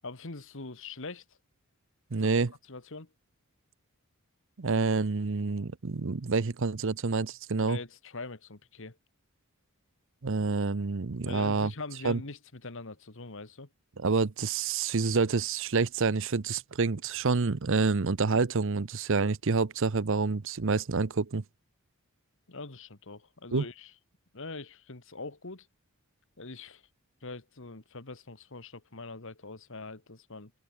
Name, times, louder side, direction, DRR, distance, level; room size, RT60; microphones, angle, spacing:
voice 1, 0.0-1.2 2.2-2.4 2.7-3.1 7.6-9.0 11.2-13.7 22.5-23.9 24.3-25.7 26.4-26.8 27.2-30.5, left 3 dB, 60° left, 1.7 m, -43 dB
voice 2, 2.1-2.5 4.6-7.8 10.2-11.7 12.0-12.2 14.0-21.4 23.5-23.6, right 4 dB, 60° right, 0.7 m, -28 dB
head